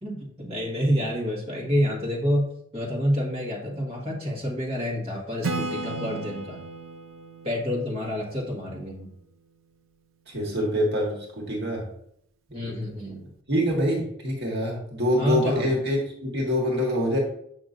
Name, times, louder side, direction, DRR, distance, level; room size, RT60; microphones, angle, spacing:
voice 1, 0.0-6.6 7.4-9.1 12.5-13.2 15.2-15.7, equal, 30° right, -3 dB, 1.7 m, -28 dB
Acoustic guitar / Strum, 5.4-9.0, right 3 dB, 80° right, 0.7 m, -35 dB
voice 2, 10.3-11.8 12.6-12.7 13.5-17.2, equal, 55° right, -2 dB, 1.6 m, -25 dB
7.5 x 5.9 x 2.6 m, 0.71 s
head